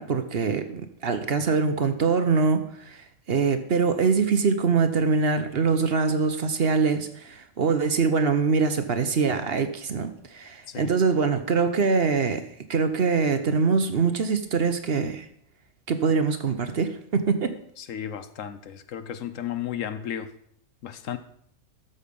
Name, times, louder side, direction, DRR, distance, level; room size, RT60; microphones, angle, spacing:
voice 1, 0.0-15.3 15.9-17.6, right 5 dB, 50° right, 9 dB, 1.0 m, -24 dB
voice 2, 17.8-20.3 20.8-21.2, left 9 dB, 75° left, 12 dB, 1.1 m, -34 dB
13.0 x 6.9 x 5.3 m, 0.69 s
omnidirectional pair, 1.4 m